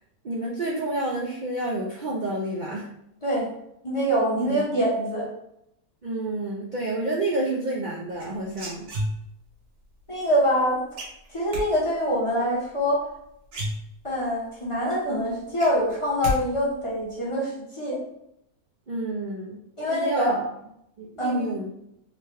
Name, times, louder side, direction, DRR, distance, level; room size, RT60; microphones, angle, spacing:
voice 1, 0.2-2.9 4.5-4.6 6.0-8.9 18.9-19.6 19.8-20.4 21.0-21.7, right 2 dB, 75° right, -4 dB, 0.4 m, -29 dB
voice 2, 3.8-5.3 10.1-10.8 11.3-13.0 14.0-17.5 17.8-18.0 19.8-20.4 21.2-21.5, equal, 25° left, -6 dB, 0.8 m, -24 dB
sound 1, 8.2-9.5 11.0-11.6 13.1-13.2 13.5-14.3 14.7-14.8 15.1-16.4 16.6-17.1, left 1 dB, 90° right, 1.7 m, -31 dB
3.8 x 2.2 x 3.3 m, 0.77 s
omnidirectional pair, 1.6 m